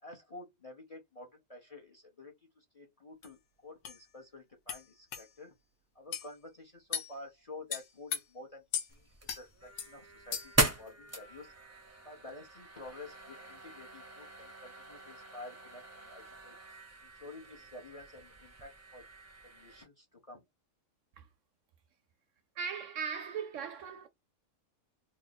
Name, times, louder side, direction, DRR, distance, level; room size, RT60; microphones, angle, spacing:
voice 1, 0.0-5.5 5.9-8.6 8.9-11.5 12.0-16.5 17.0-19.1 19.4-20.4, left 2 dB, 30° left, 0.8 m, -50 dB
sound 1, 3.2-3.3 3.8-4.0 4.7-4.8 5.1-5.3 6.1-6.3 6.9-7.1 7.7-8.2 8.7-8.9 9.3-9.4 9.8-9.9 10.3-10.6, left 8 dB, 75° left, 1.2 m, -36 dB
sound 2, 8.9-19.8, right 1 dB, 15° right, 0.5 m, -39 dB
voice 2, 22.6-24.1, right 6 dB, 65° right, 0.8 m, -38 dB
3.0 x 2.6 x 3.9 m
omnidirectional pair, 1.6 m